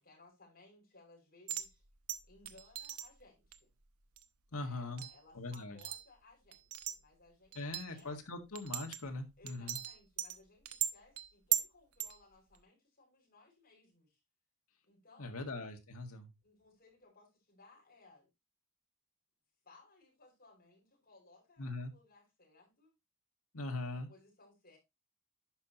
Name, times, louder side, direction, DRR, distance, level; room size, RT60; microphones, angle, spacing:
voice 1, 0.0-1.8 2.3-3.7 4.5-7.6 7.9-8.4 9.4-14.2 14.8-15.5 16.4-18.3 19.6-22.9 23.9-24.8, left 2 dB, 45° left, 6.0 m, -63 dB
sound 1, 1.5-1.7 2.1-3.1 3.5-3.6 4.2-4.3 5.0-5.2 5.5-6.0 6.5-7.0 7.5-8.0 8.5-9.1 9.5-10.4 10.7-11.7 12.0-12.2 12.5-12.6, right 12 dB, 80° right, 0.8 m, -38 dB
voice 2, 4.5-5.0 5.3-5.8 7.6-9.8 15.2-16.3 21.6-21.9 23.5-24.1, left 2 dB, 75° left, 1.8 m, -41 dB
11.0 x 5.6 x 2.9 m
head